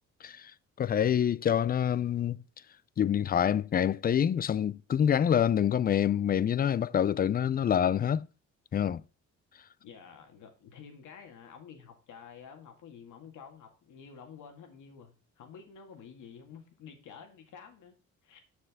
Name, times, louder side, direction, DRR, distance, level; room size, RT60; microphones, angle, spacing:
voice 1, 0.8-2.4 3.0-8.3 8.7-9.0, left 9 dB, 30° left, 0.4 m, -26 dB
voice 2, 9.8-17.9 18.2-18.4, left 6 dB, 80° left, 2.0 m, -50 dB
6.8 x 6.5 x 3.6 m
cardioid pair, 90°, 30 cm